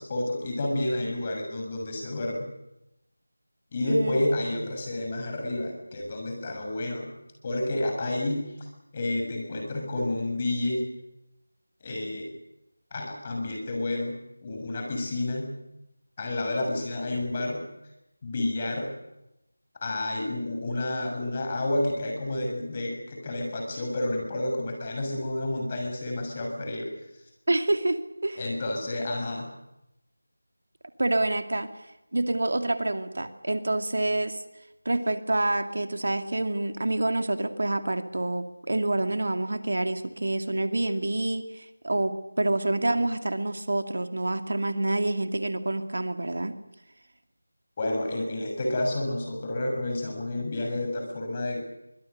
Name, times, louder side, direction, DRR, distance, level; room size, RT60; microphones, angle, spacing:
voice 1, 0.0-2.5 3.7-7.1 7.4-8.7 8.9-10.9 11.8-12.3 12.9-14.2 14.4-15.5 16.2-17.6 18.2-18.9 19.8-26.9 28.4-29.5 47.8-51.6, left 1 dB, 25° left, 2 dB, 6.6 m, -30 dB
voice 2, 3.9-4.2 27.5-28.4 31.0-31.7 32.1-34.4 34.9-46.6, right 2 dB, 65° right, 8 dB, 2.2 m, -27 dB
24.5 x 24.0 x 6.7 m, 0.90 s
figure-of-eight pair, 175°, 0 cm